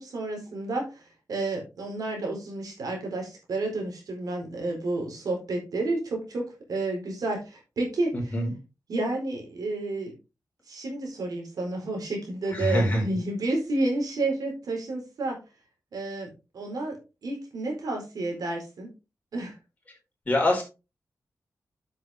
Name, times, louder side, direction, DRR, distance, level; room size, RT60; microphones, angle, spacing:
voice 1, 0.0-8.4 8.9-10.1 10.7-15.4 15.9-18.9 19.3-19.5, right 2 dB, 80° right, 1 dB, 4.3 m, -31 dB
voice 2, 8.1-8.5 12.5-13.0 20.3-20.6, left 1 dB, 25° left, -1 dB, 4.6 m, -24 dB
8.4 x 7.6 x 3.6 m, 0.29 s
wide cardioid pair, 100°, 6 cm